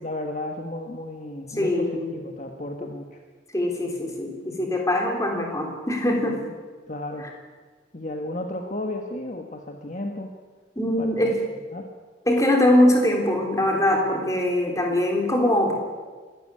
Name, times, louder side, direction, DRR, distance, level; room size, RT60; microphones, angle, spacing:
voice 1, 0.0-3.2 6.9-7.3 7.9-10.3 11.0-11.1 11.7-11.9, left 1 dB, 40° left, 3 dB, 1.5 m, -33 dB
voice 2, 1.5-2.1 3.5-6.4 10.8-11.4 12.3-15.7, left 1 dB, 15° left, 1 dB, 3.6 m, -22 dB
25.0 x 13.5 x 9.9 m, 1.5 s
head